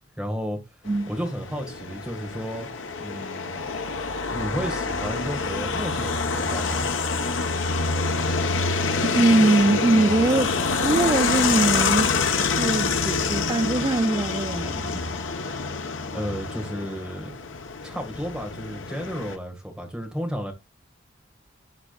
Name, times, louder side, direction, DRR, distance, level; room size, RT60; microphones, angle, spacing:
voice 1, 0.2-0.6 1.1-2.7 3.0-3.6 4.3-6.9 16.1-17.3 17.8-20.5, equal, 5° right, 1.7 m, -32 dB
sound 1, 0.9-19.4, left 4 dB, 80° left, 1.1 m, -26 dB
voice 2, 9.0-10.5 10.8-15.0, right 2 dB, 20° right, 0.3 m, -22 dB
12.0 x 5.0 x 2.4 m
head